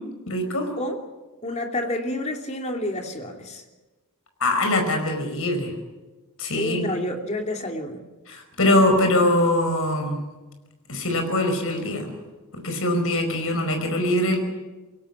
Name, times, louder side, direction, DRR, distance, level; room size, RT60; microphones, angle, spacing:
voice 1, 0.3-0.7 4.4-5.7 6.4-6.9 8.3-10.2 10.9-12.1 12.5-14.4, left 1 dB, 65° left, 5 dB, 5.1 m, -22 dB
voice 2, 1.4-3.6 6.5-8.0, left 1 dB, 30° left, 3 dB, 2.8 m, -29 dB
23.5 x 17.5 x 9.8 m, 1.2 s
head